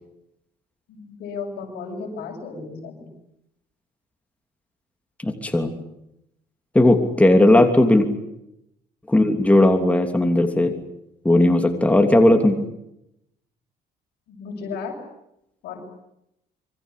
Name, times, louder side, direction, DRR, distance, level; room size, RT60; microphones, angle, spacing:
voice 1, 0.9-3.1 11.3-11.6 14.3-15.0 15.6-15.8, left 4 dB, 75° left, -1 dB, 7.3 m, -34 dB
voice 2, 5.2-5.7 6.7-8.1 9.1-10.7 11.2-12.6, left 1 dB, 10° left, 5 dB, 3.1 m, -16 dB
27.0 x 23.5 x 8.4 m, 0.82 s
cardioid pair, 110°, 17 cm